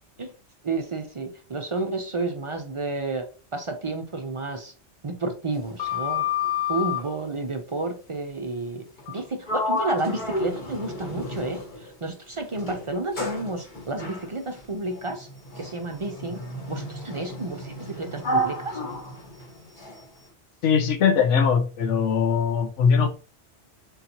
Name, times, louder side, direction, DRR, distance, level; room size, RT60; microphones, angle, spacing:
voice 1, 0.6-3.2 3.5-4.7 5.0-6.3 6.7-15.3 15.6-16.4 16.7-18.8, right 2 dB, 45° right, 0.4 m, -31 dB
Sliding door, 5.5-7.1 9.0-9.2 9.5-11.9 12.5-20.0, left 3 dB, 45° left, 1.1 m, -31 dB
voice 2, 20.6-23.1, left 6 dB, 90° left, 1.1 m, -21 dB
4.3 x 3.8 x 2.7 m
omnidirectional pair, 1.2 m